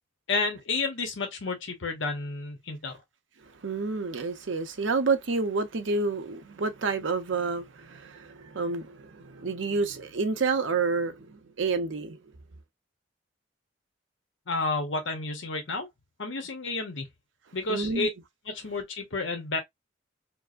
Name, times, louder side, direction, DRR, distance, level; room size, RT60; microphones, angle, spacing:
voice 1, 0.3-3.0 14.5-15.9 16.2-17.1 17.5-18.1 18.5-19.6, left 3 dB, 80° left, 0.9 m, -31 dB
voice 2, 3.6-12.2 17.7-18.1, right 4 dB, 75° right, 0.6 m, -29 dB
4.6 x 2.0 x 2.5 m
head